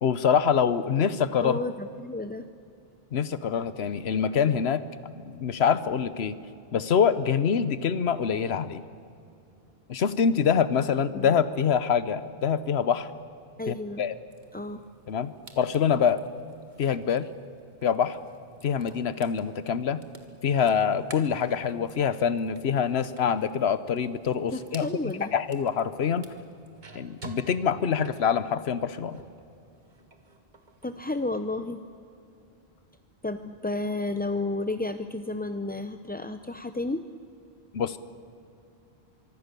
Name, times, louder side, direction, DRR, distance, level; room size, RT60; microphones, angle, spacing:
voice 1, 0.0-1.6 3.1-4.8 5.2-6.4 6.7-8.8 9.9-13.1 13.7-14.1 15.1-16.2 16.8-17.3 17.8-18.2 18.6-20.0 20.4-26.3 26.9-29.2 37.7-38.0, left 7 dB, 90° left, 14 dB, 1.1 m, -25 dB
voice 2, 1.4-2.5 11.1-11.4 13.6-14.0 14.5-14.8 24.5-25.3 30.8-31.8 33.2-37.0, left 2 dB, 10° left, 9 dB, 0.5 m, -32 dB
sound 1, 14.3-29.4 29.8-31.5, right 2 dB, 50° right, 1.9 m, -51 dB
24.5 x 24.0 x 6.8 m, 2.6 s
omnidirectional pair, 1.0 m